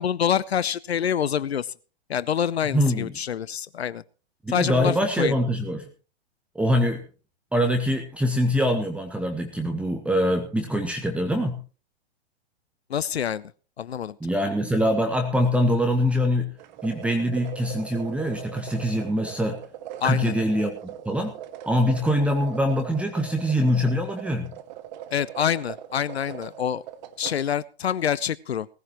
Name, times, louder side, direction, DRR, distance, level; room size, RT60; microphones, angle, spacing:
voice 1, 0.0-1.7 2.1-4.0 4.5-5.3 12.9-13.5 13.8-14.2 20.0-20.3 25.1-26.8 27.2-28.7, left 8 dB, 75° left, 19 dB, 0.7 m, -26 dB
voice 2, 2.7-3.1 4.4-5.9 6.5-7.0 7.5-11.6 14.2-16.5 16.8-19.6 20.0-20.7 21.0-21.3 21.6-24.5, equal, 5° right, 4 dB, 1.3 m, -24 dB
sound 1, 16.6-27.4, right 11 dB, 45° right, 1.3 m, -40 dB
18.5 x 15.0 x 3.0 m, 0.36 s
figure-of-eight pair, 115°, 32 cm